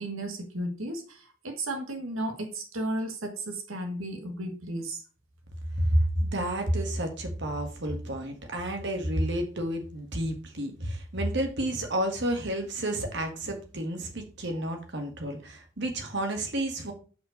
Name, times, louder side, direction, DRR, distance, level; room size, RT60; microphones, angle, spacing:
voice 1, 0.0-5.0 14.5-14.7, right 1 dB, 80° right, 4 dB, 1.6 m, -34 dB
voice 2, 5.8-16.9, right 1 dB, 55° right, 4 dB, 1.8 m, -30 dB
5.6 x 4.7 x 6.4 m, 0.37 s
head